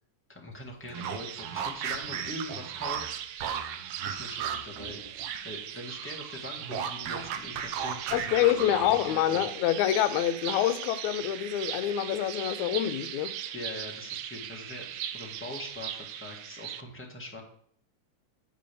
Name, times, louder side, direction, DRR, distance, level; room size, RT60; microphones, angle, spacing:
voice 1, 0.3-3.1 4.0-5.0 5.4-9.5 13.5-17.4, left 1 dB, 10° left, 0.9 m, -42 dB
sound 1, 0.8-5.6 5.8-9.1, right 7 dB, 70° right, 1.7 m, -36 dB
sound 2, 0.9-16.8, right 10 dB, 85° right, 1.3 m, -39 dB
voice 2, 8.1-13.3, left 12 dB, 80° left, 2.0 m, -26 dB
8.9 x 5.3 x 6.8 m
omnidirectional pair, 3.3 m